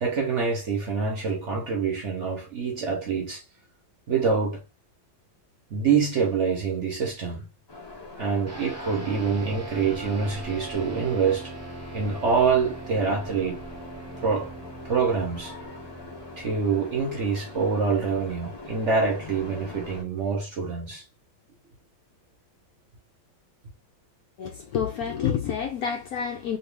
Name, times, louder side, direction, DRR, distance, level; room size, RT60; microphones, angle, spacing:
voice 1, 0.0-3.4 4.1-4.6 5.7-7.5 8.2-11.5 11.9-13.6 14.2-14.5 14.8-15.5 16.4-21.0, right 5 dB, 55° right, 0.9 m, -26 dB
sound 1, 7.7-20.0, left 2 dB, 40° left, 0.3 m, -42 dB
sound 2, 8.5-18.1, right 3 dB, 10° right, 0.8 m, -42 dB
voice 2, 24.4-26.6, left 8 dB, 75° left, 0.9 m, -28 dB
3.0 x 2.7 x 3.2 m
omnidirectional pair, 2.0 m